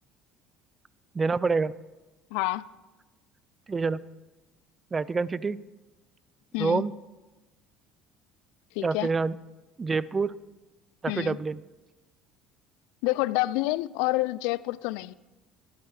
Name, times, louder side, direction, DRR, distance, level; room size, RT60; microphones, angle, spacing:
voice 1, 1.1-1.7 3.7-4.0 4.9-5.6 6.6-6.9 8.8-9.4 9.8-10.3 11.0-11.6, right 4 dB, 25° right, 0.4 m, -26 dB
voice 2, 2.3-2.6 6.5-6.8 8.7-9.1 11.1-11.4 13.0-15.1, left 19 dB, 80° left, 0.3 m, -28 dB
12.5 x 11.0 x 4.8 m
supercardioid pair, 85°, 0 cm